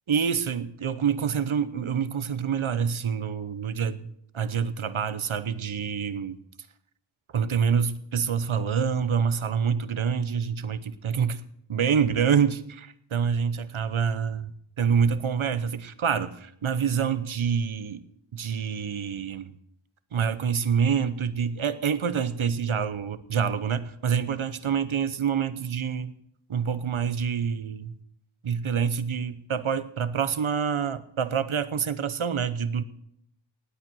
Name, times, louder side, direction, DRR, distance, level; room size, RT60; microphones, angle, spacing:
voice 1, 0.1-4.1 4.3-6.4 7.3-11.4 11.7-14.5 14.8-18.0 18.3-19.6 20.1-26.1 26.5-27.9 28.4-32.8, right 7 dB, 85° right, 14 dB, 0.9 m, -26 dB
17.5 x 9.0 x 6.2 m, 0.74 s
wide cardioid pair, 50°, 47 cm